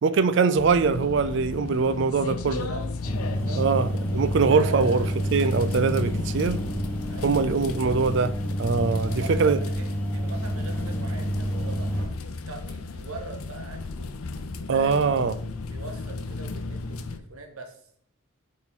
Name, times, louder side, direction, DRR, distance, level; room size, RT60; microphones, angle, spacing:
voice 1, 0.0-2.7 3.6-5.1 5.3-6.6 7.2-8.3 8.6-9.6 14.7-15.3, right 5 dB, 55° right, 0.4 m, -22 dB
sound 1, 0.6-17.2, left 3 dB, 85° left, 0.6 m, -35 dB
voice 2, 2.4-2.8 3.3-3.6 4.4-5.2 7.1-7.4 8.9-14.2 14.6-17.8, right 3 dB, 85° right, 1.2 m, -42 dB
sound 2, 3.0-12.0, equal, 10° left, 1.0 m, -29 dB
8.6 x 3.8 x 4.0 m
head